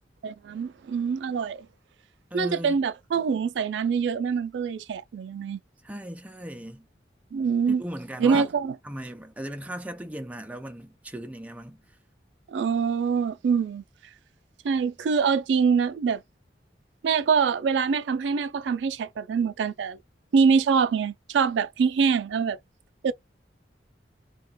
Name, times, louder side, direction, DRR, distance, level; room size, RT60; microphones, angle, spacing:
voice 1, 0.2-1.6 2.3-5.6 7.3-7.8 8.2-8.7 12.5-13.8 14.6-16.2 17.0-20.0 20.3-22.6 23.0-23.1, right 6 dB, 80° right, 0.3 m, -24 dB
voice 2, 2.3-2.8 5.8-6.8 7.7-8.5 8.8-11.8, right 1 dB, 10° right, 0.4 m, -37 dB
2.3 x 2.2 x 3.9 m
head